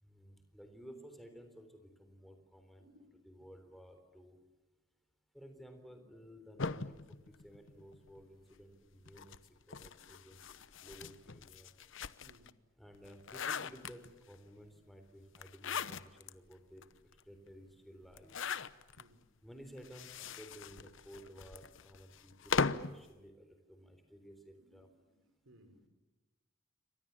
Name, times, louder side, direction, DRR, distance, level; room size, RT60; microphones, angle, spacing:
voice 1, 0.0-2.9 3.2-4.4 5.3-9.4 9.7-10.4 10.8-11.7 12.7-16.8 17.2-18.3 19.4-24.9, equal, ahead, 6 dB, 3.8 m, -55 dB
voice 2, 2.8-3.3 5.9-6.0 12.2-12.5 19.0-19.2 23.8-23.9 24.6-25.1 25.4-25.9, equal, 65° right, 9 dB, 4.6 m, -63 dB
sound 1, 6.6-8.2 9.0-12.5 12.9-14.3 15.3-16.3 16.8-16.9 17.1-17.2 18.1-19.0 19.8-23.0, left 5 dB, 65° left, 0.9 m, -39 dB
29.0 x 24.5 x 7.2 m, 1.1 s
head